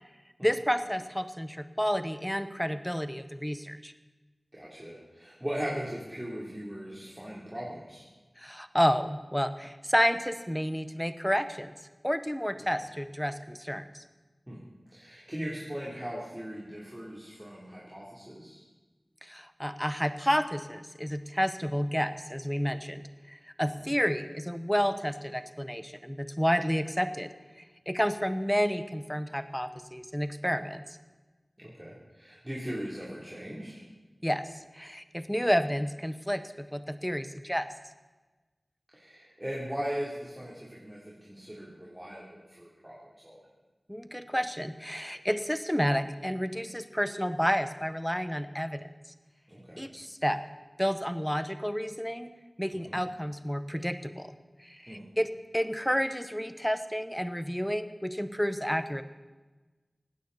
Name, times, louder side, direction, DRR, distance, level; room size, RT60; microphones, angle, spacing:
voice 1, 0.4-3.9 8.4-11.8 12.0-13.9 19.2-23.0 23.6-27.3 27.9-30.8 34.2-34.4 34.7-37.7 43.9-48.9 49.8-50.4 50.8-52.3 52.6-54.3 54.8-59.0, equal, 5° left, 10 dB, 1.0 m, -30 dB
voice 2, 4.5-8.1 14.5-14.6 14.9-18.6 23.7-23.9 31.6-33.8 38.9-43.0 43.2-43.4 49.5-49.8 52.7-53.0 54.9-55.0, equal, 15° right, -6 dB, 3.6 m, -39 dB
18.5 x 16.0 x 4.3 m, 1.2 s
wide cardioid pair, 65°, 0 cm